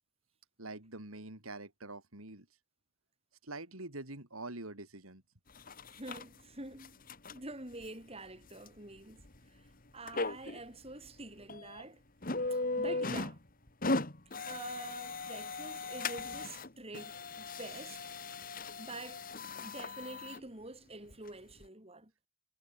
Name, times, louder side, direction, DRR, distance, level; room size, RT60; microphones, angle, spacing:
voice 1, 0.6-2.5 3.4-5.2, right 2 dB, 90° right, 5.1 m, -45 dB
sound 1, 5.6-6.2 6.7-7.4 7.8-7.9 8.7-8.8 9.2-9.4 10.1-10.6 11.1-11.2 11.5-11.8 12.2-13.4 13.7-16.7 16.9-20.4 21.1-21.2 21.6-21.7, left 3 dB, 40° left, 2.2 m, -37 dB
voice 2, 5.9-7.1 7.3-9.7 9.9-12.0 12.5-13.4 14.5-18.1 18.8-19.2 19.6-22.1, right 2 dB, 30° right, 5.1 m, -47 dB
head